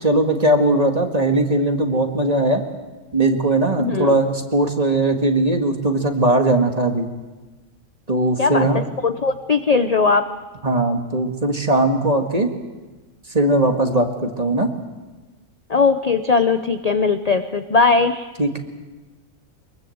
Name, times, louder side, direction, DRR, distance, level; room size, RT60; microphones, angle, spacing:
voice 1, 0.0-2.6 3.1-7.1 8.1-8.8 10.6-12.5 13.3-14.7 18.4-18.6, right 2 dB, 25° right, 4 dB, 1.9 m, -19 dB
voice 2, 3.8-4.2 8.4-10.3 15.7-18.3, left 4 dB, 35° left, 9 dB, 0.7 m, -19 dB
23.5 x 22.0 x 7.9 m, 1.2 s
omnidirectional pair, 1.5 m